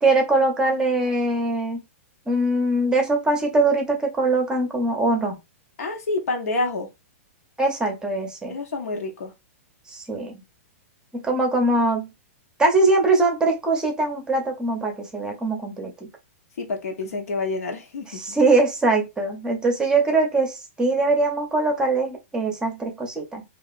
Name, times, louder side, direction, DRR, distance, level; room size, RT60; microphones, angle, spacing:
voice 1, 0.0-1.8 2.3-5.4 7.6-8.5 9.9-10.3 11.1-12.1 12.6-15.9 18.2-23.4, right 2 dB, 10° right, 0.6 m, -22 dB
voice 2, 5.8-6.9 8.5-9.3 16.6-18.4, left 3 dB, 85° left, 0.9 m, -28 dB
2.8 x 2.4 x 2.3 m
hypercardioid pair, 150°, 8 cm